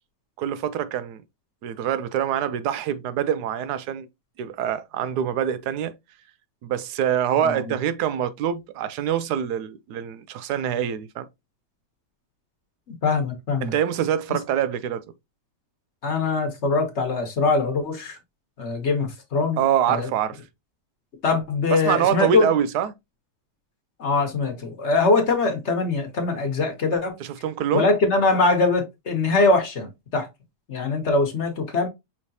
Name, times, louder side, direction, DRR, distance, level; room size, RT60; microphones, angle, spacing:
voice 1, 0.4-1.2 1.6-4.1 4.4-5.9 6.6-11.3 13.6-15.0 19.6-20.4 21.7-22.9 27.2-27.9, right 9 dB, 85° right, 1.2 m, -25 dB
voice 2, 13.0-13.7 16.0-18.2 18.6-19.6 19.9-20.1 21.2-22.5 24.0-27.2 27.7-30.3 30.7-31.9, left 3 dB, 50° left, 1.2 m, -22 dB
5.7 x 3.2 x 2.7 m
omnidirectional pair, 1.7 m